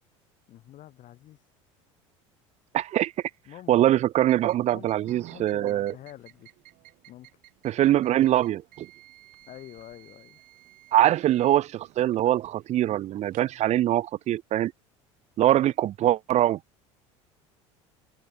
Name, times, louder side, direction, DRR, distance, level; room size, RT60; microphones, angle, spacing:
voice 1, 0.5-1.4 3.5-3.7 4.7-6.5 7.1-7.3 9.5-10.4, left 13 dB, 55° left, 5.7 m, -47 dB
voice 2, 2.7-3.1 3.7-5.9 7.6-8.9 10.9-14.7 15.4-16.6, right 13 dB, 45° right, 0.6 m, -23 dB
sound 1, 4.2-13.6, right 20 dB, 60° right, 3.1 m, -54 dB
hypercardioid pair, 80°, 16 cm